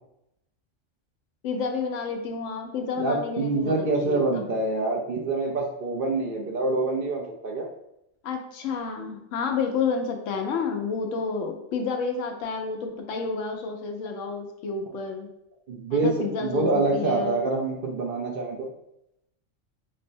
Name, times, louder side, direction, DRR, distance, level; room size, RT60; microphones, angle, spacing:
voice 1, 1.4-4.5 8.2-15.3 15.9-17.4, left 5 dB, 80° left, 4 dB, 1.0 m, -30 dB
voice 2, 3.0-7.7 15.7-18.7, right 3 dB, 55° right, 0 dB, 0.7 m, -26 dB
5.2 x 2.0 x 2.6 m, 0.80 s
omnidirectional pair, 1.3 m